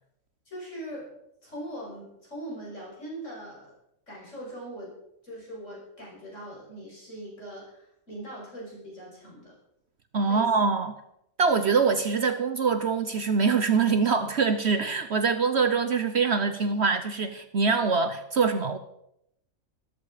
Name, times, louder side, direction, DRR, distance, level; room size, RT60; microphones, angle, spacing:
voice 1, 0.5-1.2 1.4-3.7 4.1-5.0 5.2-9.5 10.2-10.5, right 1 dB, 60° left, -4 dB, 6.4 m, -41 dB
voice 2, 10.1-10.9 11.4-18.8, right 5 dB, 55° right, 9 dB, 1.1 m, -24 dB
14.0 x 13.5 x 5.0 m, 0.79 s
omnidirectional pair, 1.5 m